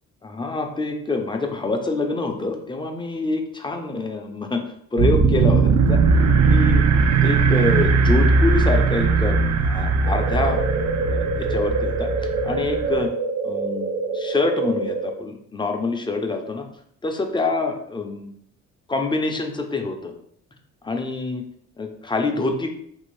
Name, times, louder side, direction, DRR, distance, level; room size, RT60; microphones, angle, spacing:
voice 1, 0.2-4.6 4.9-6.0 6.5-6.9 7.2-12.1 12.4-13.1 13.4-16.6 17.0-18.3 18.9-20.1 20.8-21.4 21.8-22.7, left 3 dB, 15° left, 4 dB, 0.5 m, -26 dB
sound 1, 5.0-13.1, right 4 dB, 60° right, 0.5 m, -19 dB
sound 2, 10.1-15.1, right 3 dB, 80° right, 1.3 m, -26 dB
2.8 x 2.6 x 3.2 m, 0.67 s
cardioid pair, 90°, 30 cm